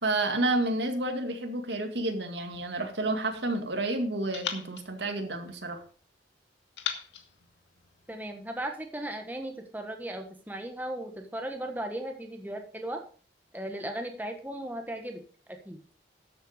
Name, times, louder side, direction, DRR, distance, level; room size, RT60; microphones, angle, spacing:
voice 1, 0.0-5.8, right 2 dB, 75° right, 5 dB, 2.3 m, -30 dB
sound 1, 2.5-3.7 4.3-6.0 6.8-8.4, left 8 dB, 85° left, 1.9 m, -41 dB
voice 2, 8.1-13.0 13.5-15.2 15.6-15.8, right 1 dB, 10° right, 4 dB, 1.5 m, -36 dB
13.0 x 8.1 x 5.1 m, 0.40 s
head